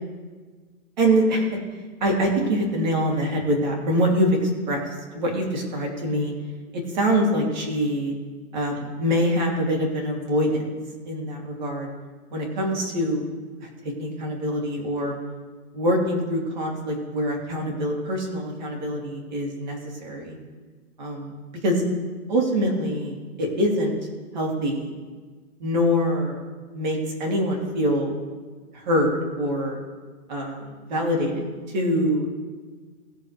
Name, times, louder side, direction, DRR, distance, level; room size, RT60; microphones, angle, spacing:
voice 1, 1.0-1.6 2.0-6.3 6.7-8.1 8.5-10.7 11.1-11.9 12.3-13.2 13.6-13.7 14.0-15.1 15.7-20.4 21.0-21.3 21.6-21.8 22.3-23.9 24.3-24.9 25.6-26.4 26.7-28.1 28.7-29.8 30.3-32.3, equal, 30° right, -1 dB, 2.9 m, -24 dB
20.0 x 6.9 x 3.4 m, 1.5 s
hypercardioid pair, 170°, 44 cm